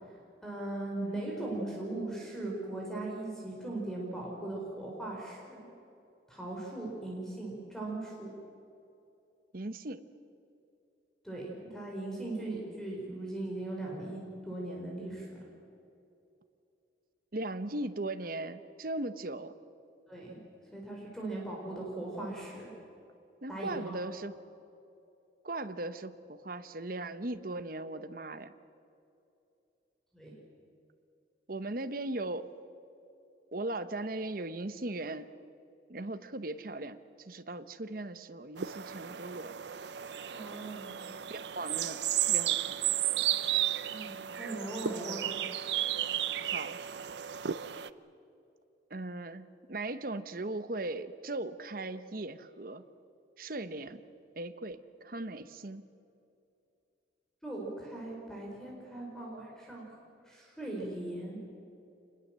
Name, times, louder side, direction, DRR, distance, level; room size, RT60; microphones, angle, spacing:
voice 1, 0.4-5.7 6.3-8.3 11.2-15.3 20.1-20.4 20.7-22.7 23.5-24.0 30.1-30.3 40.3-41.0 43.8-45.4 57.4-59.8 60.3-61.4, right 2 dB, 5° left, -2 dB, 4.4 m, -39 dB
voice 2, 9.5-10.0 17.3-19.5 23.4-24.3 25.4-28.5 31.5-32.5 33.5-35.3 35.9-39.5 41.3-42.0 42.3-42.8 46.5-46.8 48.9-52.8 53.4-54.0 54.4-55.9, right 2 dB, 50° right, 11 dB, 1.0 m, -38 dB
sound 1, 38.6-47.9, right 11 dB, 70° right, 0.6 m, -33 dB
26.5 x 20.5 x 7.5 m, 2.7 s
head